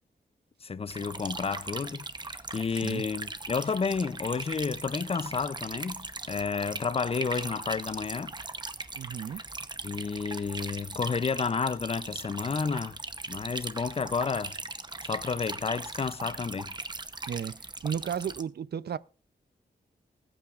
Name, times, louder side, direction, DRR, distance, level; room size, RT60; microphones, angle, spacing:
voice 1, 0.6-8.3 9.8-13.0 13.3-14.6 15.0-16.7, left 5 dB, 35° left, 0.5 m, -31 dB
sound 1, 0.9-18.4, right 3 dB, 25° right, 0.8 m, -39 dB
voice 2, 9.0-9.4 17.3-19.0, right 8 dB, 65° right, 0.5 m, -34 dB
20.0 x 8.7 x 2.4 m
wide cardioid pair, 110°, 18 cm